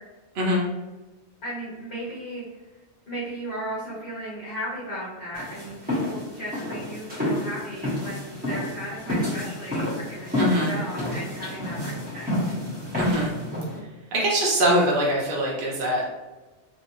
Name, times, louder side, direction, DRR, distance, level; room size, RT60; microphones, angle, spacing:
voice 1, 1.4-2.4 3.1-12.3, equal, 50° left, -9 dB, 0.9 m, -35 dB
sound 1, 5.3-13.8, left 1 dB, 10° right, 0.8 m, -29 dB
voice 2, 10.4-10.7 13.0-13.3 14.1-16.1, equal, 55° right, -4 dB, 0.7 m, -23 dB
2.5 x 2.1 x 2.9 m, 1.1 s
omnidirectional pair, 1.2 m